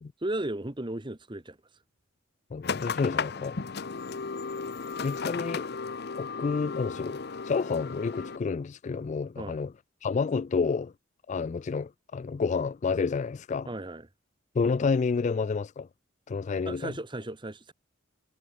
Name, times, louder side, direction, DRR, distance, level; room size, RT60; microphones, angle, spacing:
voice 1, 0.2-1.6 9.4-9.6 13.6-14.1 16.6-17.7, right 1 dB, 25° right, 1.3 m, -35 dB
voice 2, 2.5-3.6 5.0-5.7 6.2-9.7 10.0-10.9 11.3-13.7 14.5-15.9 16.3-16.9, left 5 dB, 35° left, 0.3 m, -29 dB
sound 1, 2.6-8.4, left 5 dB, 55° left, 0.7 m, -35 dB
head